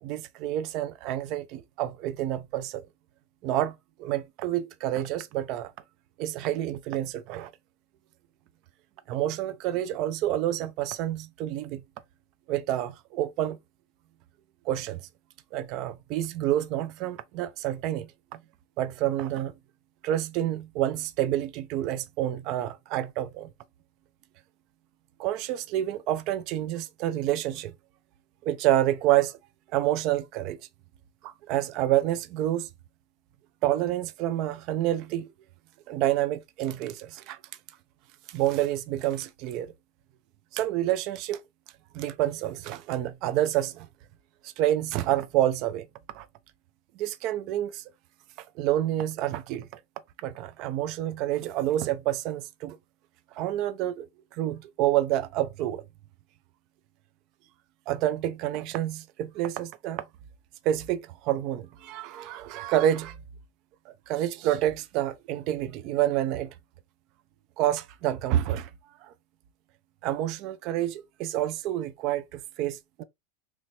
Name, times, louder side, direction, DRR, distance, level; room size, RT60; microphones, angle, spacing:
voice 1, 0.0-2.8 3.4-5.7 6.2-7.5 9.1-11.8 12.5-13.6 14.7-15.1 15.5-18.1 18.3-18.4 18.8-19.5 20.0-23.5 25.2-27.7 28.4-29.4 29.7-30.6 31.2-32.7 33.6-35.3 35.9-37.4 38.3-39.7 40.5-41.4 41.9-43.9 44.4-45.9 46.1-46.3 47.0-47.8 48.6-49.8 50.2-52.8 53.4-55.8 57.9-60.0 60.6-63.2 63.9-66.5 67.6-68.7 69.0-69.1 70.0-73.0, right 13 dB, 50° right, 0.4 m, -28 dB
3.0 x 2.9 x 2.8 m
hypercardioid pair, 95°, 0 cm